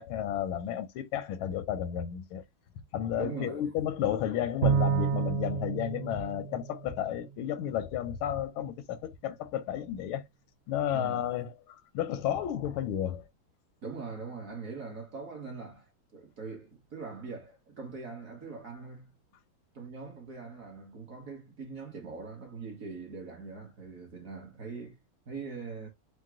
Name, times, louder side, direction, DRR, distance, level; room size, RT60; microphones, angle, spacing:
voice 1, 0.0-2.4 2.9-10.2 10.7-13.3, left 10 dB, 85° left, 1.5 m, -32 dB
voice 2, 3.2-3.7 10.9-11.2 13.8-19.1 19.7-25.0 25.3-25.9, right 4 dB, 45° right, 1.3 m, -42 dB
Bowed string instrument, 4.6-7.2, right 7 dB, 70° right, 0.8 m, -30 dB
4.7 x 2.2 x 3.6 m
omnidirectional pair, 2.3 m